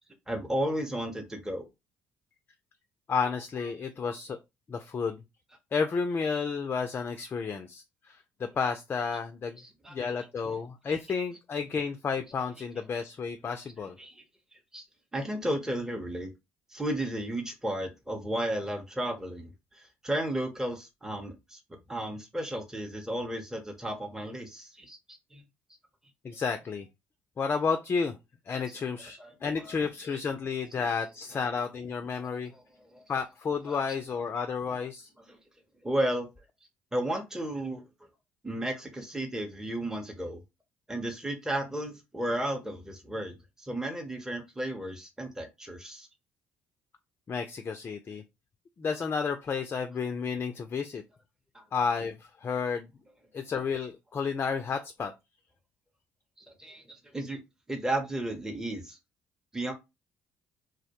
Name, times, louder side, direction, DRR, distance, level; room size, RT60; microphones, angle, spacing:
voice 1, 0.3-1.7 9.6-10.0 10.9-11.0 14.0-14.2 14.7-14.8 15.1-16.3 16.7-21.6 21.9-25.4 28.5-28.6 29.2-29.8 31.3-31.5 32.5-32.6 32.9-33.0 33.7-33.8 35.3-35.4 35.8-36.3 36.9-37.8 38.4-40.4 40.9-46.1 51.5-51.6 56.4-57.4 57.7-59.0 59.5-59.7, right 1 dB, 10° right, 0.7 m, -34 dB
voice 2, 3.1-4.4 4.7-5.2 5.7-9.6 9.9-14.0 26.2-26.9 27.4-28.2 28.5-32.5 33.1-35.1 47.3-48.2 48.8-51.0 51.7-52.9 53.3-55.1, left 5 dB, 35° left, 0.3 m, -31 dB
2.2 x 2.1 x 2.8 m
hypercardioid pair, 55°, 6 cm